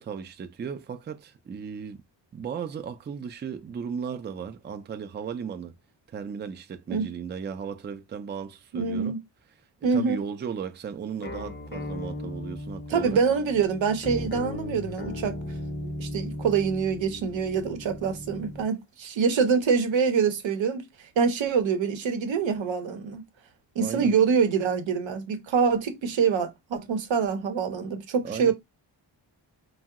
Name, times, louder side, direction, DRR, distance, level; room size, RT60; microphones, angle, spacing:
voice 1, 0.0-2.0 2.3-5.7 6.1-9.1 9.9-13.2 23.8-24.2 28.2-28.5, right 7 dB, 25° right, 0.3 m, -35 dB
voice 2, 8.7-9.2 9.8-10.2 12.9-15.4 15.8-23.2 23.8-28.5, right 6 dB, 85° right, 0.7 m, -25 dB
sound 1, 11.2-18.7, left 1 dB, 25° left, 0.6 m, -37 dB
2.7 x 2.0 x 3.5 m
cardioid pair, 70°, 44 cm